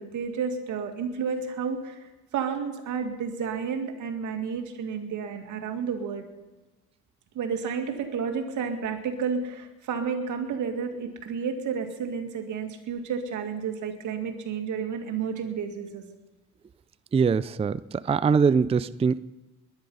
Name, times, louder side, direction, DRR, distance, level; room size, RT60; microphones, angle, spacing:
voice 1, 0.0-2.0 2.3-6.2 7.3-16.0, right 6 dB, 75° right, 4 dB, 2.3 m, -31 dB
voice 2, 17.1-19.2, right 5 dB, 20° right, 16 dB, 0.4 m, -23 dB
21.5 x 10.0 x 5.6 m, 1.1 s
cardioid pair, 90°, 30 cm